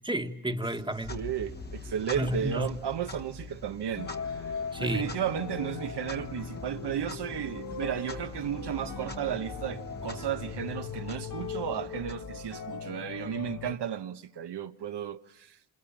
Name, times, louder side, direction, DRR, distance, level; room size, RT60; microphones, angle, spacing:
voice 1, 0.0-1.2 2.2-2.7 4.7-5.1, equal, 10° right, 1.7 m, -31 dB
Clock, 0.9-12.8, left 3 dB, 20° left, 1.5 m, -44 dB
voice 2, 1.1-15.6, right 9 dB, 55° right, 1.3 m, -34 dB
sound 1, 4.0-13.8, left 6 dB, 40° left, 1.4 m, -39 dB
28.5 x 26.5 x 7.3 m
cardioid pair, 75°, 49 cm